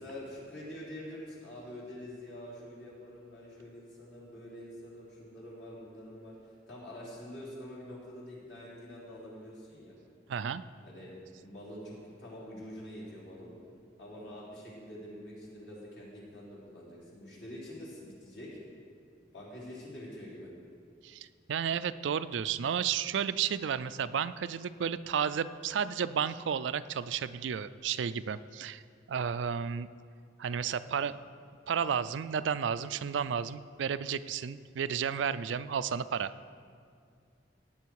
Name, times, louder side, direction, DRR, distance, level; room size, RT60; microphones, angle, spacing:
voice 1, 0.0-6.3 6.7-9.9 10.8-11.1 11.4-13.5 14.0-18.5 19.3-20.5, left 1 dB, 65° left, -6 dB, 3.9 m, -46 dB
voice 2, 10.3-10.6 21.0-28.8 29.1-29.9 30.4-31.2 31.7-36.3, right 7 dB, 80° right, 14 dB, 0.4 m, -32 dB
16.5 x 8.6 x 4.7 m, 2.2 s
head